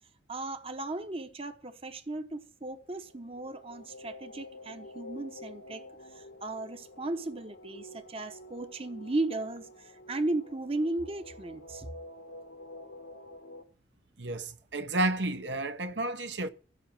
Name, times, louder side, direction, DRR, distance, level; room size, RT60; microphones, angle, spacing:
voice 1, 0.3-5.8 6.1-11.9, right 2 dB, 30° right, 1.0 m, -36 dB
sound 1, 3.0-13.6, left 1 dB, 85° left, 1.6 m, -49 dB
voice 2, 14.2-16.5, right 2 dB, 70° right, 1.1 m, -31 dB
16.5 x 5.8 x 7.4 m
head